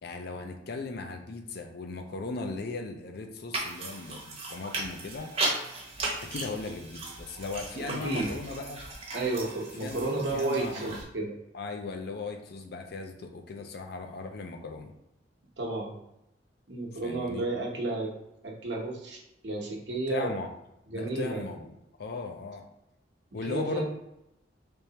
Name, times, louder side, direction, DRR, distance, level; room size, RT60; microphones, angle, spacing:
voice 1, 0.0-5.3 6.2-8.8 9.8-11.0 11.5-14.9 17.0-17.4 20.1-20.5 20.9-21.7 22.0-22.6 23.3-23.9, left 3 dB, 60° left, 5 dB, 0.5 m, -37 dB
sound 1, 3.5-11.0, right 2 dB, 35° right, 0.8 m, -36 dB
voice 2, 7.7-8.3 9.1-11.3 15.6-16.0 16.7-18.1 18.4-20.3 20.9-21.5 23.4-23.9, right 2 dB, 70° right, -1 dB, 0.9 m, -32 dB
3.4 x 3.2 x 2.8 m, 0.85 s
head